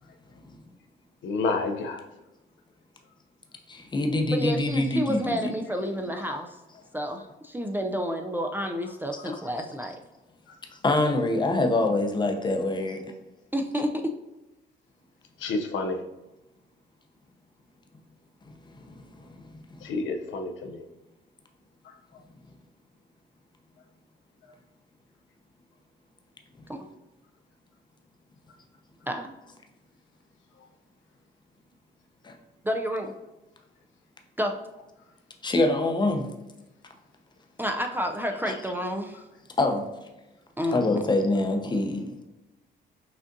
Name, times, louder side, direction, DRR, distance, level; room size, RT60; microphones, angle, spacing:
voice 1, 1.2-2.0 15.4-16.0 19.8-20.8, left 3 dB, 75° left, 5 dB, 0.5 m, -29 dB
voice 2, 3.7-5.5 9.2-9.4 10.8-13.0 18.7-19.6 26.6-26.7 32.2-32.3 35.4-36.3 38.5-38.6 39.6-39.8 40.7-42.3, left 2 dB, 20° left, 4 dB, 0.6 m, -25 dB
voice 3, 4.3-6.5 6.9-10.0 13.5-13.9 26.7-26.9 29.1-29.3 32.6-33.1 34.4-34.5 37.6-39.2 40.6-41.0, equal, 10° right, 3 dB, 0.3 m, -30 dB
5.9 x 2.5 x 2.6 m, 1.0 s
cardioid pair, 90°, 20 cm